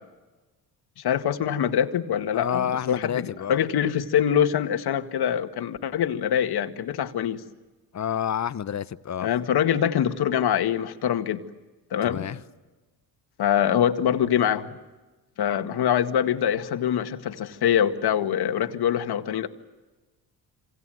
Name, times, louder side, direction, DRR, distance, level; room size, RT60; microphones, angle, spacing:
voice 1, 1.0-7.4 9.2-11.4 11.9-12.3 13.4-14.7 15.4-19.5, left 9 dB, 60° left, 8 dB, 2.0 m, -24 dB
voice 2, 2.3-3.6 7.9-9.3 12.0-12.4, left 9 dB, 40° left, 15 dB, 1.0 m, -29 dB
27.0 x 27.0 x 7.8 m, 1.2 s
supercardioid pair, 70°, 44 cm